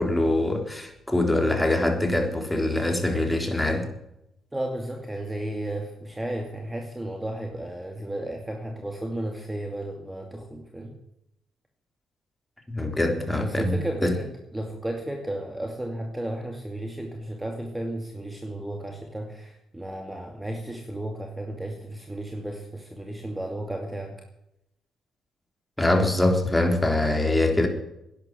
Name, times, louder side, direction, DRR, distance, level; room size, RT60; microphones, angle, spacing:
voice 1, 0.0-3.9 12.7-13.8 14.0-14.1 25.8-27.7, left 1 dB, 10° left, 4 dB, 3.7 m, -23 dB
voice 2, 4.5-10.9 13.4-24.2, right 1 dB, 10° right, 3 dB, 2.4 m, -33 dB
11.5 x 10.5 x 9.1 m, 0.81 s
cardioid pair, 90°, 0 cm